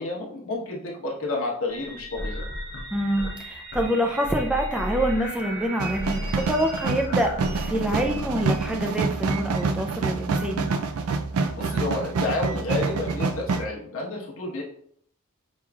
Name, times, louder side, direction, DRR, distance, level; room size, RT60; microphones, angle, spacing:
voice 1, 0.0-2.4 11.5-14.6, left 2 dB, 65° left, -3 dB, 1.1 m, -30 dB
sound 1, 1.7-6.9, right 2 dB, 40° right, 1.1 m, -40 dB
sound 2, 2.2-3.4 3.7-4.0 4.2-9.0, left 1 dB, 45° left, 0.7 m, -35 dB
voice 2, 2.9-10.7, equal, 5° right, 2 dB, 0.4 m, -26 dB
sound 3, 5.8-13.6, right 4 dB, 75° right, 0.4 m, -27 dB
5.4 x 3.1 x 2.3 m, 0.65 s
head